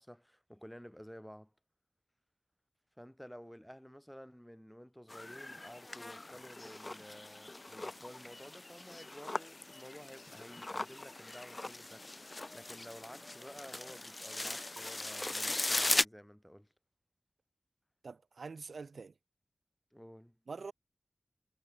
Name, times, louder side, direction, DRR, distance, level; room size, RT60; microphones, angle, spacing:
voice 1, 0.0-1.5 3.0-16.7 19.9-20.4, equal, 5° left, 6.4 m, -52 dB
sound 1, 5.1-16.1, left 2 dB, 40° left, 1.3 m, -39 dB
voice 2, 18.0-19.1 20.5-20.7, right 4 dB, 90° right, 0.9 m, -45 dB
wide cardioid pair, 50°, 0 cm